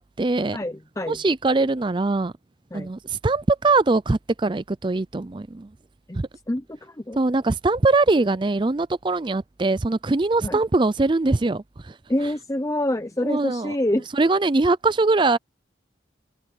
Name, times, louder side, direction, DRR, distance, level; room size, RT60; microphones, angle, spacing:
voice 1, 0.0-0.6 1.1-2.3 2.7-5.7 6.2-6.3 7.2-11.9 13.2-13.7 14.1-15.4, right 3 dB, 25° right, 0.4 m, -22 dB
voice 2, 0.5-1.2 2.7-2.9 6.1-6.2 6.5-7.2 10.4-10.6 12.1-14.1, left 1 dB, 15° left, 0.6 m, -26 dB
open air
head